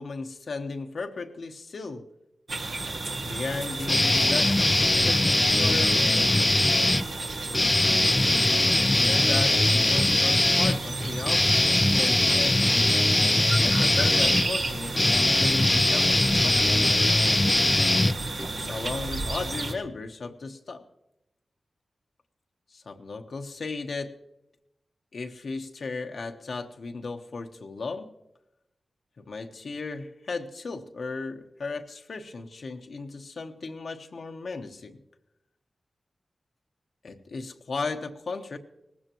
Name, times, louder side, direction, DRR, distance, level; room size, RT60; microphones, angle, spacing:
voice 1, 0.0-2.0 3.2-5.3 5.6-6.4 8.6-12.8 13.5-17.4 18.5-20.8 22.7-24.2 25.1-28.1 29.2-35.0 37.0-38.6, left 4 dB, 70° left, 4 dB, 1.1 m, -36 dB
sound 1, 2.5-19.7, right 2 dB, 75° right, 1.9 m, -33 dB
sound 2, 3.9-7.0 7.5-18.7, left 1 dB, 25° left, 0.5 m, -21 dB
18.5 x 16.0 x 3.0 m, 0.88 s
cardioid pair, 45°, 0 cm